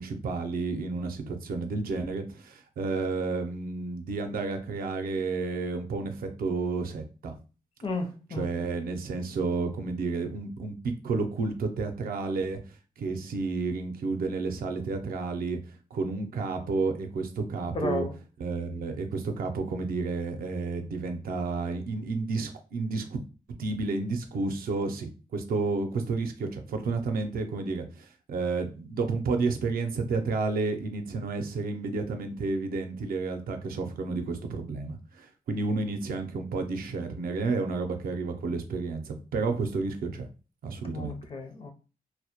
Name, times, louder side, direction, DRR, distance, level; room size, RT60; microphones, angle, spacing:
voice 1, 0.0-7.3 8.3-12.6 13.0-15.6 15.9-18.0 18.4-23.1 23.6-40.3 40.6-41.2, right 3 dB, 80° right, 5 dB, 0.5 m, -31 dB
voice 2, 7.8-8.5 17.7-18.1 40.9-41.7, left 3 dB, 40° left, 5 dB, 0.5 m, -33 dB
2.1 x 2.1 x 2.8 m, 0.35 s
cardioid pair, 100°, 15 cm